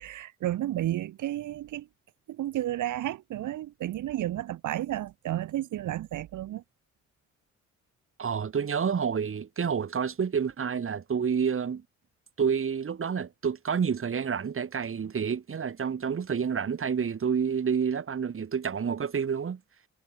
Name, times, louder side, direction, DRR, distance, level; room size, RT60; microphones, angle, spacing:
voice 1, 0.0-1.9 2.3-6.6, right 13 dB, 80° right, 5.3 m, -32 dB
voice 2, 8.2-11.8 12.4-19.6, right 6 dB, 45° right, 6.0 m, -29 dB
cardioid pair, 90°, 30 cm